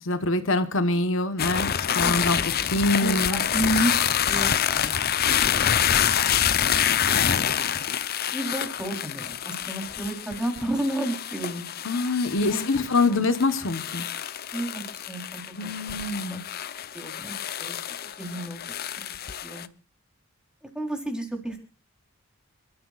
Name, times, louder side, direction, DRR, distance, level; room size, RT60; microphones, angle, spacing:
voice 1, 0.0-3.4 11.8-14.1 15.6-16.4, left 2 dB, 60° left, 9 dB, 1.1 m, -25 dB
sound 1, 1.4-19.7, left 9 dB, 45° left, 0.7 m, -27 dB
voice 2, 2.7-3.9 4.3-5.1 8.3-11.6 12.4-13.3 14.5-16.4 16.9-17.7 18.2-18.6 19.4-19.6 20.6-21.6, right 1 dB, 5° right, 2 dB, 3.5 m, -31 dB
28.5 x 13.5 x 2.4 m, 0.31 s
head